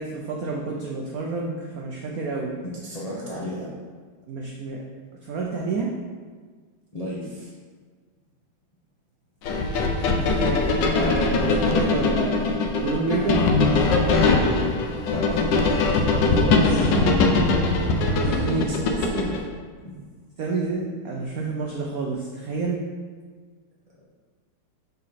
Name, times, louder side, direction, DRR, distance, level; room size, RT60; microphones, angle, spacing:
voice 1, 0.0-2.5 4.3-4.8 5.2-5.9 10.1-13.5 16.1-17.1 18.4-18.7 20.4-22.8, right 3 dB, 80° right, -1 dB, 0.8 m, -29 dB
voice 2, 2.6-3.7 6.9-7.5 13.2-13.5 15.0-17.3 18.2-19.3 19.8-20.0, left 1 dB, 35° left, -7 dB, 0.6 m, -33 dB
sound 1, 9.5-19.4, left 3 dB, 70° left, 1.2 m, -21 dB
6.7 x 4.1 x 4.1 m, 1.5 s
omnidirectional pair, 2.3 m